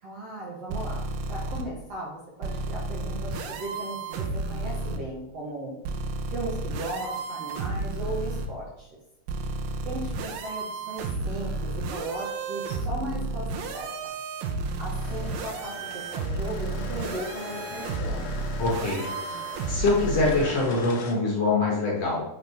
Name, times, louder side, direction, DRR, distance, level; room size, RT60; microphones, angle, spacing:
voice 1, 0.0-1.0 1.3-5.7 6.3-8.9 9.8-14.1 14.8-18.6, right 2 dB, 55° right, -4 dB, 1.9 m, -37 dB
sound 1, 0.7-1.6 2.4-5.0 5.8-8.5 9.3-20.5, right 3 dB, 75° right, 2.3 m, -32 dB
sound 2, 15.0-21.1, left 5 dB, 75° left, 1.6 m, -40 dB
voice 2, 18.6-19.0 19.7-22.2, left 3 dB, 50° left, -3 dB, 2.4 m, -24 dB
9.7 x 6.1 x 3.6 m, 0.87 s
omnidirectional pair, 4.3 m